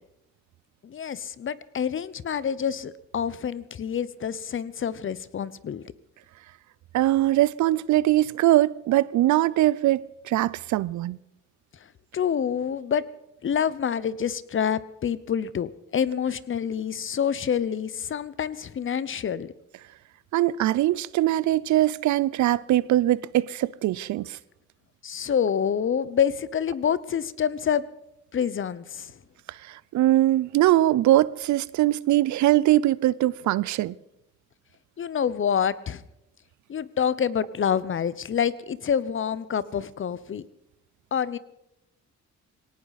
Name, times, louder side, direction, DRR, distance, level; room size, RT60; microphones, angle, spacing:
voice 1, 0.8-5.8 12.1-13.0 13.4-19.5 25.0-27.8 28.3-29.1 35.0-36.0 36.7-40.4 41.1-41.4, left 8 dB, 40° left, 0.8 m, -27 dB
voice 2, 6.9-11.2 20.3-24.4 29.5-34.0, right 14 dB, 70° right, 0.6 m, -22 dB
19.5 x 18.0 x 4.1 m
cardioid pair, 90°, 30 cm